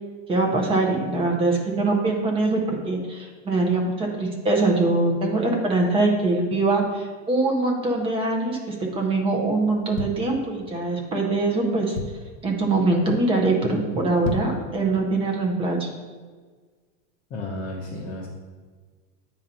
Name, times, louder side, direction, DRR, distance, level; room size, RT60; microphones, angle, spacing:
voice 1, 0.3-12.0 12.4-15.9, right 2 dB, 15° right, 0 dB, 0.7 m, -23 dB
sound 1, 9.7-10.9 11.4-11.5 11.7-12.4 12.9-13.2 13.4-13.5 14.1-14.7 15.1-15.2, left 4 dB, 70° left, 0.8 m, -32 dB
voice 2, 17.3-18.3, left 1 dB, 20° left, -5 dB, 0.7 m, -32 dB
8.8 x 2.9 x 5.2 m, 1.5 s
supercardioid pair, 165°, 38 cm